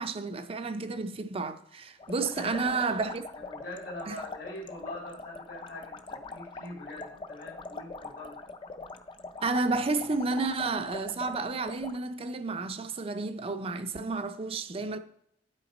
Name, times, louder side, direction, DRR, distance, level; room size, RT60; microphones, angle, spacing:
voice 1, 0.0-3.2 4.1-4.2 9.4-15.0, right 3 dB, 30° right, 0.5 m, -31 dB
sound 1, 2.0-12.0, left 3 dB, 25° left, 0.4 m, -43 dB
voice 2, 2.2-2.9 3.3-8.4, left 1 dB, 75° left, 2.2 m, -43 dB
9.7 x 5.7 x 4.2 m
head